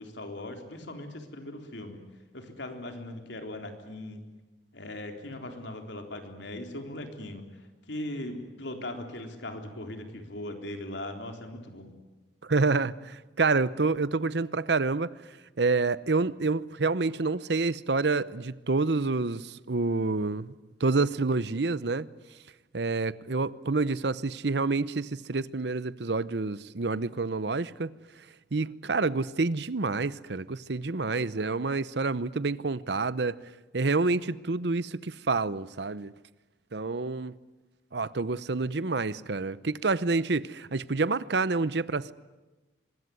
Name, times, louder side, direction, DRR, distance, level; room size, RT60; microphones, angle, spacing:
voice 1, 0.0-2.0 2.3-4.2 4.7-7.4 7.9-11.9, left 1 dB, 70° left, 3.9 m, -39 dB
voice 2, 12.4-15.1 15.6-20.5 20.8-22.1 22.7-27.9 28.5-33.3 33.7-36.1 36.7-37.4 37.9-42.1, right 3 dB, 65° right, 0.8 m, -28 dB
24.5 x 21.5 x 9.5 m
head